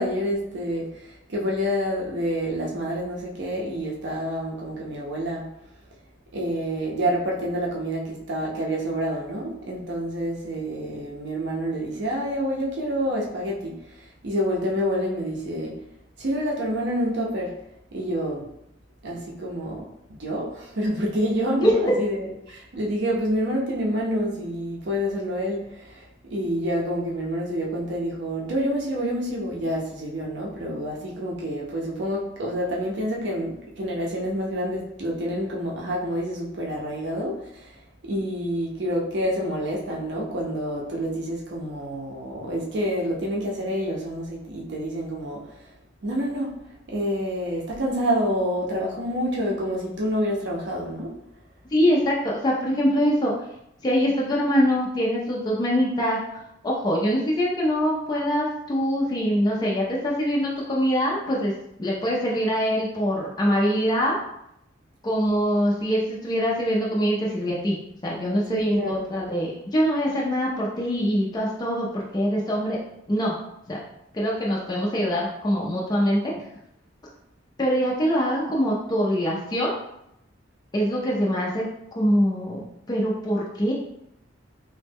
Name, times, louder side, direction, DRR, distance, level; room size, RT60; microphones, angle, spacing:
voice 1, 0.0-5.5 6.3-15.8 16.2-17.6 17.9-18.5 19.0-45.7 46.0-46.6 46.9-51.2 68.5-69.1, equal, 65° right, -2 dB, 0.6 m, -28 dB
voice 2, 21.6-22.0 51.7-53.3 53.8-56.2 56.6-61.5 61.8-64.2 65.0-67.8 68.0-72.8 73.1-73.4 73.7-73.8 74.1-76.3 77.6-79.7 80.7-83.7, equal, 20° left, -4 dB, 0.4 m, -23 dB
3.0 x 2.1 x 3.4 m, 0.80 s
head